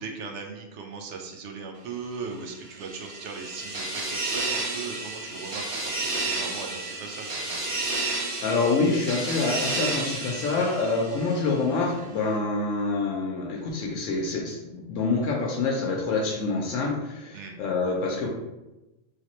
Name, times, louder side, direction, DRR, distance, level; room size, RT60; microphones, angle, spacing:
voice 1, 0.0-7.7 17.3-17.5, right 5 dB, 70° right, 3 dB, 0.8 m, -38 dB
sound 1, 2.5-11.6, right 2 dB, 45° right, 0.4 m, -31 dB
voice 2, 8.4-18.3, left 3 dB, 75° left, -2 dB, 0.9 m, -26 dB
3.3 x 2.8 x 3.0 m, 1.0 s
omnidirectional pair, 1.3 m